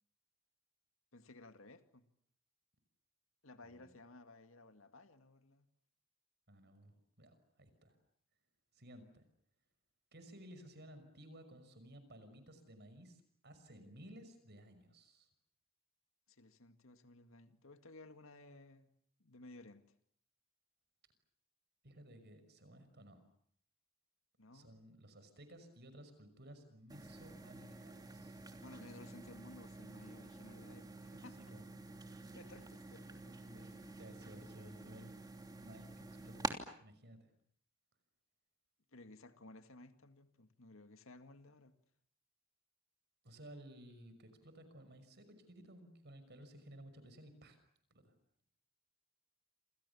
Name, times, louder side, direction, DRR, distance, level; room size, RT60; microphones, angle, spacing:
voice 1, 1.1-2.0 3.4-5.7 16.3-18.9 19.2-19.8 24.4-24.7 28.6-31.4 32.3-33.4 38.9-41.7, left 2 dB, 70° left, 8 dB, 2.1 m, -57 dB
voice 2, 6.5-8.0 8.7-9.2 10.1-15.3 21.8-23.2 24.5-28.4 31.4-31.7 33.4-35.1 35.5-36.5 36.8-37.3 43.2-47.6 47.9-48.1, right 1 dB, 55° right, 10 dB, 6.0 m, -56 dB
sound 1, 26.9-36.5, right 2 dB, 20° right, 3.0 m, -48 dB
28.5 x 27.5 x 7.1 m, 0.65 s
head